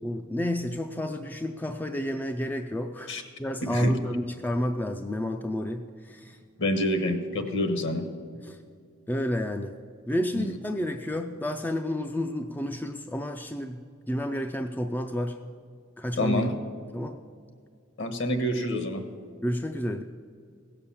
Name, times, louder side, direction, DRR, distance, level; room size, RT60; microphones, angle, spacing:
voice 1, 0.0-6.4 8.4-8.6 9.1-9.8 10.1-13.8 14.1-15.4 16.0-16.5 16.9-17.2 19.4-20.0, left 1 dB, 10° left, 5 dB, 0.3 m, -30 dB
voice 2, 3.6-3.9 6.6-8.0 10.3-10.5 16.2-16.5 18.0-19.0, left 1 dB, 55° left, 7 dB, 1.3 m, -27 dB
16.5 x 6.8 x 7.2 m, 2.2 s
head